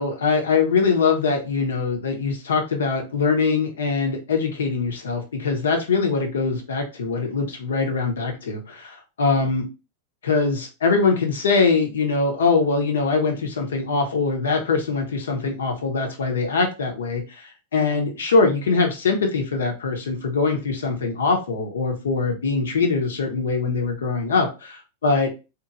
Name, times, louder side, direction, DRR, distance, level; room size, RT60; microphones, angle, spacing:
voice 1, 0.0-9.7 10.2-25.4, left 4 dB, 65° left, 3 dB, 0.7 m, -22 dB
2.9 x 2.5 x 2.4 m, 0.30 s
figure-of-eight pair, 90°, 0 cm